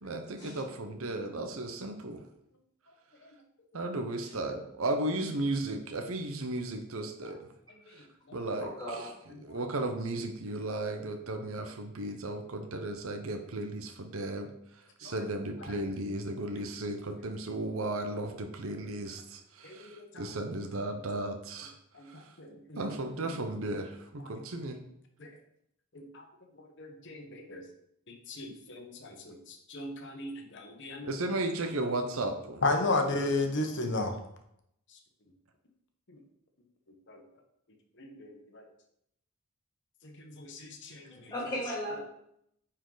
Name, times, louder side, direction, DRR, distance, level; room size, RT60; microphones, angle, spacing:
voice 1, 0.0-2.2 3.7-7.4 8.3-9.1 9.4-14.5 15.0-21.7 22.8-24.8 31.0-32.6, right 2 dB, 65° right, 5 dB, 0.8 m, -35 dB
voice 2, 8.6-9.1 41.3-42.0, equal, 20° left, -5 dB, 2.8 m, -36 dB
voice 3, 19.6-20.3 21.9-22.9 24.2-24.3 25.2-25.3 25.9-26.2 26.8-27.6 28.3-31.1 32.6-34.2 37.1-37.2 38.0-38.6 40.0-41.3, left 2 dB, 55° left, 4 dB, 1.1 m, -35 dB
9.5 x 4.5 x 3.9 m, 0.76 s
head